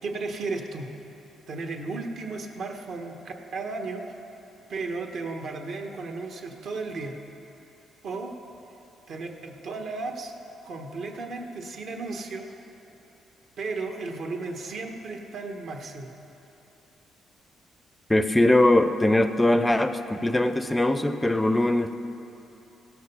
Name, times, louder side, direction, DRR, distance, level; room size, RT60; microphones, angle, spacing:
voice 1, 0.0-0.9 1.5-4.2 4.7-7.2 8.0-8.3 9.1-10.3 10.6-12.6 13.6-16.1, right 3 dB, 65° right, 3 dB, 1.2 m, -34 dB
voice 2, 18.1-21.9, left 1 dB, 15° left, 10 dB, 0.4 m, -21 dB
15.5 x 6.4 x 5.5 m, 3.0 s
cardioid pair, 90°, 0 cm